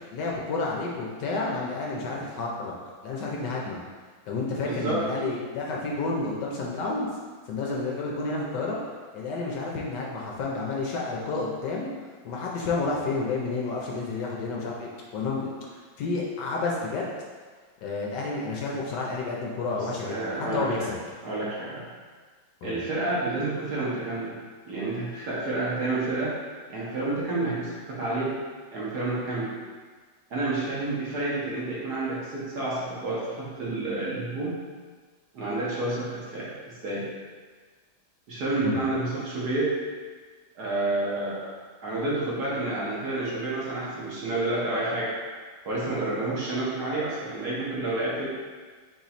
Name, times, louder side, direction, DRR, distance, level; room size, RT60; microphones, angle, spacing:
voice 1, 0.1-2.7 3.0-3.8 4.3-7.1 7.5-8.8 9.1-11.9 12.2-15.5 16.0-17.1 17.8-20.9 22.6-22.8 38.6-38.8, left 3 dB, 70° left, -2 dB, 1.2 m, -30 dB
voice 2, 4.6-5.0 19.7-20.9 21.2-21.9 22.6-24.4 24.7-26.4 26.7-28.4 28.7-29.5 30.3-34.5 35.3-37.1 38.3-39.8 40.6-41.5 41.8-45.1 45.6-48.3, right 2 dB, 60° right, -7 dB, 1.5 m, -29 dB
4.2 x 3.0 x 4.0 m, 1.5 s
omnidirectional pair, 2.1 m